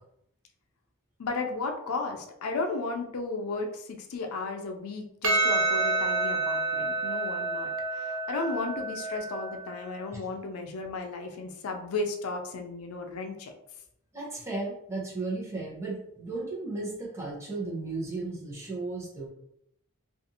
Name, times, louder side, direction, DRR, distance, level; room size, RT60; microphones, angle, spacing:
voice 1, 1.2-13.5, left 3 dB, 85° left, 4 dB, 0.4 m, -34 dB
Percussion, 5.2-9.9, right 3 dB, 65° right, 0.5 m, -29 dB
voice 2, 14.1-19.3, right 3 dB, 15° right, -4 dB, 0.7 m, -35 dB
2.5 x 2.4 x 2.7 m, 0.74 s
head